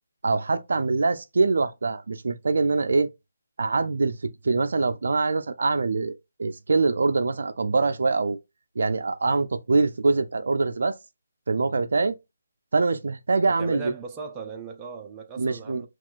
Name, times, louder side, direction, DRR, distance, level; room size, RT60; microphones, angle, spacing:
voice 1, 0.2-3.1 3.6-4.2 4.4-6.1 6.4-8.4 8.8-11.0 11.5-12.1 12.7-13.8 15.4-15.8, right 3 dB, 65° right, 0.4 m, -24 dB
voice 2, 13.5-15.9, right 5 dB, 15° right, 0.5 m, -37 dB
5.8 x 2.3 x 2.4 m
figure-of-eight pair, 150°, 0 cm